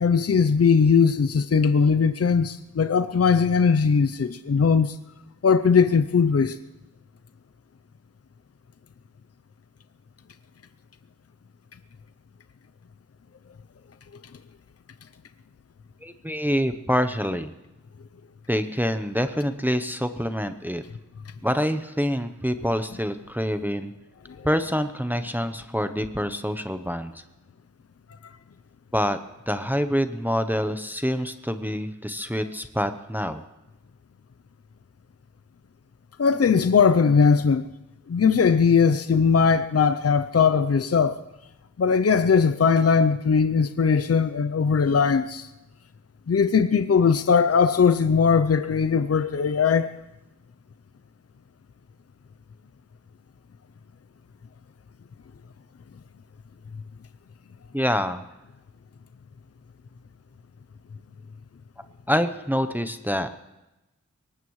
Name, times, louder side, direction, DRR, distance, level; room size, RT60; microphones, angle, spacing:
voice 1, 0.0-4.9 5.4-6.6 36.2-37.6 38.1-41.2 41.8-45.5 46.3-49.9, left 5 dB, 50° left, 0.6 m, -19 dB
voice 2, 16.0-17.5 18.5-20.8 21.4-23.9 24.4-27.2 28.9-29.2 29.5-33.4 57.7-58.2 62.1-63.3, equal, 5° right, 0.8 m, -26 dB
22.5 x 19.0 x 3.2 m
wide cardioid pair, 45°, 32 cm